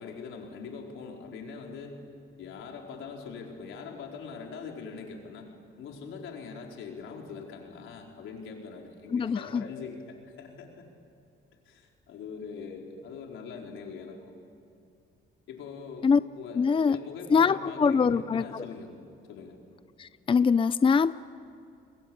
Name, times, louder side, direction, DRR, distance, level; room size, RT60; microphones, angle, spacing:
voice 1, 0.0-2.0 2.4-5.5 5.8-10.8 11.6-14.3 15.5-16.1 16.4-16.6 16.9-18.9 19.3-19.6, left 5 dB, 85° left, 1 dB, 4.6 m, -42 dB
voice 2, 9.1-9.6 16.0-16.2 16.5-17.0 17.3-18.7 20.0-21.1, left 5 dB, 25° left, 15 dB, 0.5 m, -23 dB
29.5 x 21.5 x 8.8 m, 2.7 s
cardioid pair, 90°, 20 cm